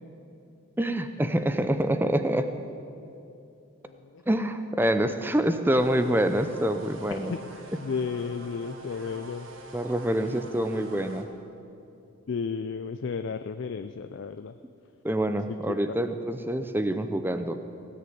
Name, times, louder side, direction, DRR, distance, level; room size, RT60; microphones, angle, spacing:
voice 1, 0.8-2.5 4.3-7.3 9.7-11.3 15.0-17.6, right 1 dB, 10° right, 9 dB, 0.5 m, -26 dB
voice 2, 3.9-4.2 7.3-7.4 7.8-9.5 12.3-14.5 15.5-16.0, left 5 dB, 55° left, 9 dB, 0.4 m, -33 dB
sound 1, 5.7-11.2, right 2 dB, 65° right, 1.4 m, -46 dB
17.0 x 6.7 x 9.3 m, 2.7 s
head